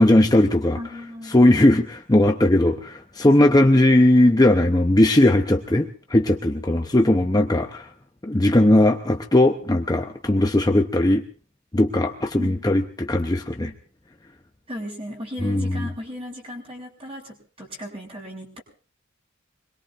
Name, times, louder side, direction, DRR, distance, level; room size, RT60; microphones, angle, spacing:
voice 1, 0.0-0.8 1.3-7.9 8.2-11.2 11.7-13.7 15.4-15.9, left 1 dB, 20° left, 3 dB, 0.8 m, -18 dB
voice 2, 0.7-1.5 12.4-12.6 14.7-18.6, left 1 dB, 25° right, 1 dB, 5.3 m, -36 dB
25.5 x 21.5 x 2.6 m, 0.41 s
head